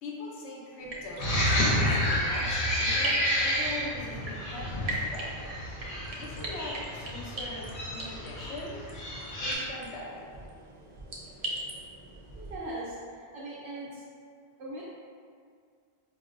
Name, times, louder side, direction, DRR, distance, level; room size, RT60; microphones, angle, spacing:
voice 1, 0.0-5.5 6.1-8.9 9.4-10.3, left 2 dB, 90° left, -3 dB, 0.9 m, -41 dB
sound 1, 0.8-12.6, right 1 dB, 50° right, 0.5 m, -41 dB
sound 2, 1.2-9.5, equal, 60° left, 0.8 m, -30 dB
voice 2, 12.4-14.0 14.6-14.8, right 1 dB, 85° right, -8 dB, 0.9 m, -39 dB
4.9 x 2.0 x 2.5 m, 2.1 s
omnidirectional pair, 1.1 m